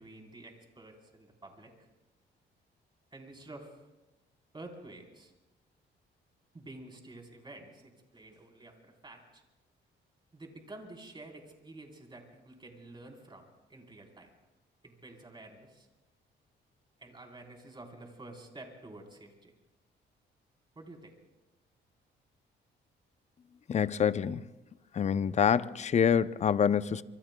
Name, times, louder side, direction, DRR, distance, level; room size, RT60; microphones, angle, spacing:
voice 1, 0.0-1.9 3.1-3.8 4.5-5.3 6.5-9.4 10.3-13.4 13.7-14.3 14.8-15.9 17.0-19.5 20.8-21.1, right 2 dB, 25° right, 3.8 m, -50 dB
voice 2, 23.7-24.4 24.9-27.0, left 7 dB, 35° left, 0.5 m, -26 dB
25.5 x 24.5 x 2.2 m
cardioid pair, 90°, 20 cm